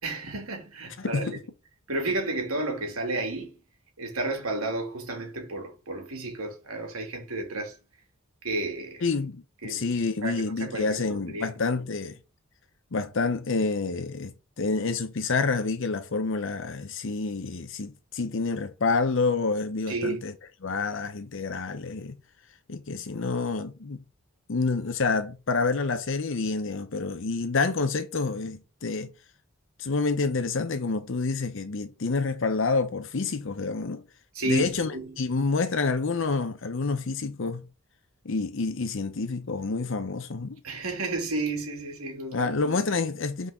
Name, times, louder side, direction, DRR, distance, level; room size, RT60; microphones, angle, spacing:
voice 1, 0.0-1.4 1.9-3.6 4.0-7.8 8.4-9.0 9.6-9.8 10.2-11.5 19.9-20.2 34.3-35.2 40.6-42.5, right 2 dB, 90° right, 2.9 m, -32 dB
voice 2, 1.0-1.4 9.0-12.2 12.9-14.3 14.6-20.3 20.6-22.2 22.7-24.0 24.5-29.1 29.8-34.0 34.4-37.6 38.2-40.6 42.3-43.5, left 4 dB, 60° left, 0.7 m, -28 dB
6.2 x 5.2 x 5.8 m
head